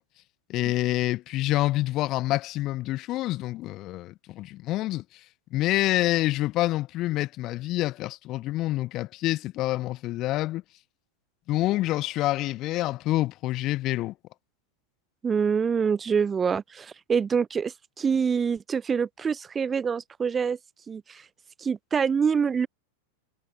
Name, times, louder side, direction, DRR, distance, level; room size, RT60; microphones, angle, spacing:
voice 1, 0.5-5.2 5.5-10.6 11.5-14.1, left 16 dB, 35° left, 1.1 m, -27 dB
voice 2, 15.2-20.6 20.9-21.3 21.6-22.7, right 6 dB, 20° right, 0.6 m, -26 dB
figure-of-eight pair, 90°, 0 cm